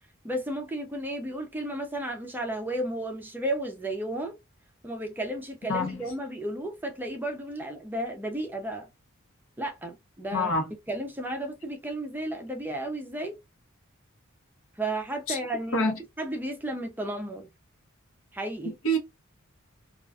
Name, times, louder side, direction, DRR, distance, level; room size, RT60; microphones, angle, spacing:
voice 1, 0.2-4.4 4.8-8.9 9.6-10.5 10.9-13.4 14.8-15.9 16.2-17.5 18.3-18.8, right 1 dB, 10° right, 0.4 m, -33 dB
voice 2, 5.7-6.1 10.3-10.7 15.3-15.4 15.7-16.0 18.6-19.0, equal, 70° left, 0.8 m, -27 dB
2.3 x 2.3 x 2.3 m
head